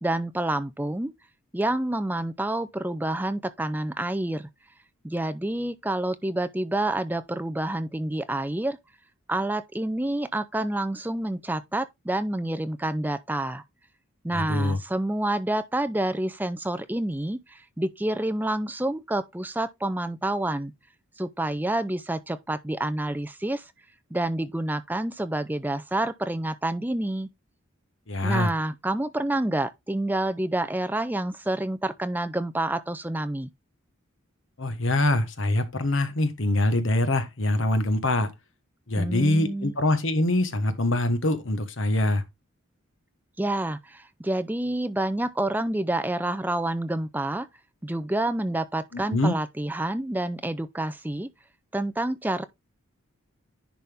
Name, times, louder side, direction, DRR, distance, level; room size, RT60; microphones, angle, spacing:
voice 1, 0.0-1.1 1.5-4.5 5.0-8.8 9.3-13.6 14.2-20.7 21.2-23.7 24.1-27.3 28.2-33.5 39.0-39.7 43.4-47.5 47.8-51.3 51.7-52.4, right 1 dB, 10° right, 0.5 m, -28 dB
voice 2, 14.3-14.8 28.1-28.5 34.6-38.3 38.9-42.2 48.9-49.3, left 1 dB, 60° left, 1.3 m, -24 dB
10.5 x 4.2 x 3.5 m
head